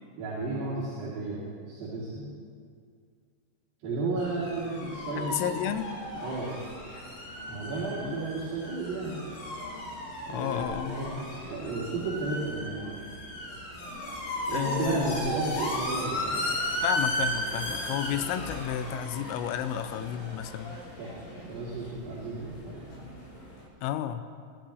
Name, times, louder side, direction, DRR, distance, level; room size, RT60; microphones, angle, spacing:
voice 1, 0.2-2.3 3.8-5.6 6.2-6.6 7.5-9.2 10.3-13.0 14.5-16.7 21.0-21.2 21.5-22.9, right 3 dB, 60° right, -10 dB, 4.3 m, -33 dB
sound 1, 4.2-23.7, equal, 70° left, 5.9 m, -36 dB
voice 2, 5.2-5.9 8.0-8.2 10.3-11.1 14.5-15.3 16.8-20.8 23.8-24.2, left 10 dB, 90° left, 10 dB, 3.2 m, -32 dB
22.5 x 12.0 x 3.2 m, 2.2 s
omnidirectional pair, 5.8 m